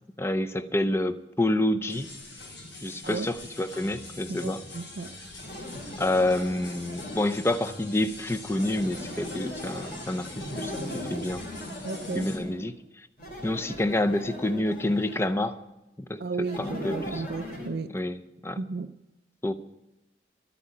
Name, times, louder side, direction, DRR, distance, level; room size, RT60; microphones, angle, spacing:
voice 1, 0.2-2.1 2.8-4.6 6.0-11.4 12.1-13.1 13.4-15.6 16.0-17.2 17.9-18.6 19.4-19.5, left 1 dB, 15° left, 0.6 m, -28 dB
sound 1, 1.9-12.4, left 2 dB, 90° left, 5.0 m, -44 dB
voice 2, 4.3-5.2 11.8-12.3 16.2-17.9 18.6-19.0, right 3 dB, 60° right, 0.5 m, -34 dB
sound 2, 5.4-7.6 8.5-12.6 13.2-15.4 16.4-17.7, left 1 dB, 50° left, 3.8 m, -39 dB
13.0 x 8.5 x 8.4 m
head